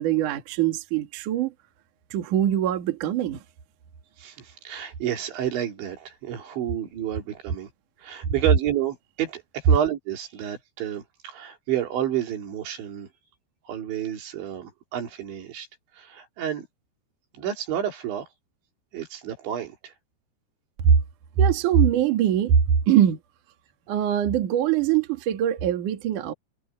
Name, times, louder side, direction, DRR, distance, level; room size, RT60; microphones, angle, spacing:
voice 1, 0.0-1.5 2.1-3.4 20.8-21.0 21.4-22.6 22.9-23.2 23.9-26.3, right 9 dB, 55° right, 3.0 m, -22 dB
voice 2, 4.2-7.7 8.0-13.1 13.7-15.7 16.0-16.7 17.3-18.3 18.9-19.9, right 10 dB, 80° right, 5.6 m, -30 dB
omnidirectional pair, 5.2 m